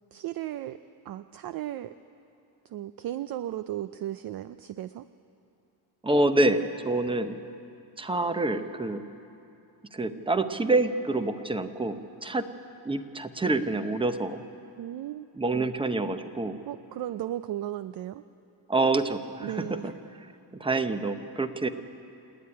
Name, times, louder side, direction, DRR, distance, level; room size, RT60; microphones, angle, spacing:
voice 1, 0.1-0.8 1.0-1.9 2.6-5.1 14.8-15.7 16.7-18.2 19.4-19.9, right 12 dB, 50° right, 13 dB, 0.5 m, -35 dB
voice 2, 6.0-7.4 8.0-9.0 9.9-12.4 12.8-14.4 15.4-16.6 18.7-19.6 20.6-21.7, right 2 dB, 10° right, 9 dB, 0.8 m, -27 dB
28.0 x 9.5 x 9.7 m, 2.7 s
cardioid pair, 130°, 47 cm